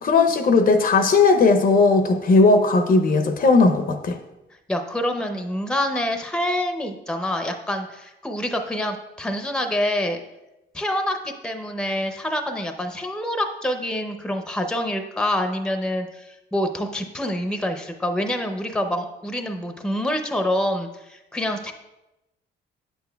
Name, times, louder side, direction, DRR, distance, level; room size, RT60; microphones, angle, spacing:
voice 1, 0.0-4.2, left 3 dB, 45° left, 8 dB, 0.6 m, -17 dB
voice 2, 4.7-10.2 10.7-21.7, left 1 dB, 5° left, 6 dB, 0.6 m, -26 dB
8.7 x 7.0 x 2.2 m, 0.96 s
cardioid pair, 90°, 20 cm